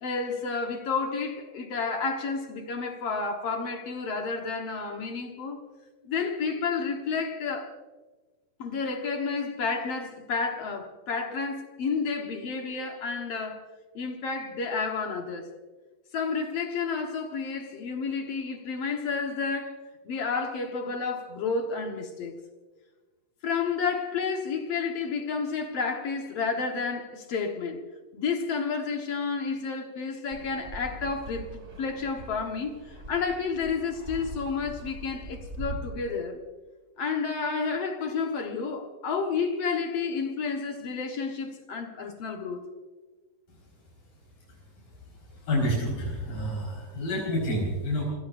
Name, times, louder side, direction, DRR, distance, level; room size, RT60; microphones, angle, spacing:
voice 1, 0.0-5.6 6.0-7.7 8.6-13.7 14.0-15.5 16.1-19.8 20.1-22.4 23.4-27.8 28.1-36.4 37.0-42.6, left 5 dB, 55° left, 2.1 m, -31 dB
Fixed-wing aircraft airplane, 30.3-35.8, right 1 dB, 25° right, 2.0 m, -41 dB
voice 2, 45.5-48.0, equal, 85° left, 6.3 m, -28 dB
29.5 x 16.5 x 2.5 m
omnidirectional pair, 3.8 m